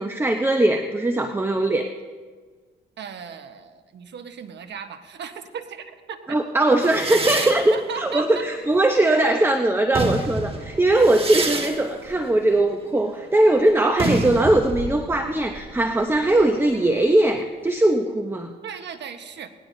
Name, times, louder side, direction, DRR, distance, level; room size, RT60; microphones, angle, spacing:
voice 1, 0.0-1.9 6.3-18.5, right 1 dB, 10° right, 5 dB, 0.8 m, -20 dB
voice 2, 3.0-6.9 7.3-8.5 18.6-19.5, right 7 dB, 65° right, 8 dB, 1.2 m, -36 dB
sound 1, 6.8-9.3 9.7-17.2, right 2 dB, 30° right, 1.7 m, -30 dB
19.0 x 17.5 x 2.7 m, 1.5 s
cardioid pair, 90°, 20 cm